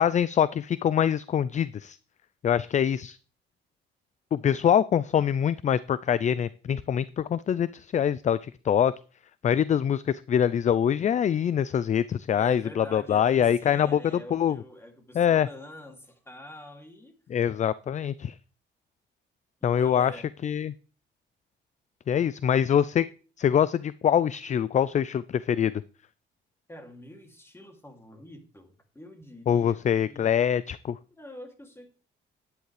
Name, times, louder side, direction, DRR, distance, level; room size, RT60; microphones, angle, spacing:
voice 1, 0.0-2.0 2.4-3.2 4.3-8.9 9.4-14.0 14.3-14.6 15.1-15.5 17.3-18.4 19.6-20.1 20.4-20.7 22.1-23.1 23.4-25.7 29.5-31.0, left 9 dB, 35° left, 18 dB, 0.4 m, -24 dB
voice 2, 12.3-17.1 19.6-20.3 26.7-30.4 31.1-31.9, left 1 dB, 10° left, 4 dB, 2.6 m, -45 dB
11.5 x 9.9 x 3.3 m, 0.38 s
cardioid pair, 90°, 20 cm